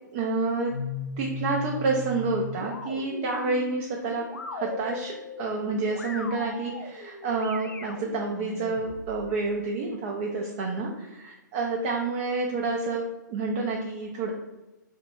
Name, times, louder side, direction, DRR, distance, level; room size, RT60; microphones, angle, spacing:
voice 1, 0.1-0.7 1.2-14.3, right 3 dB, 40° right, 0 dB, 0.4 m, -29 dB
sound 1, 0.7-9.3, left 3 dB, 80° left, 0.4 m, -38 dB
2.6 x 2.1 x 2.9 m, 1.0 s
figure-of-eight pair, 120°, 10 cm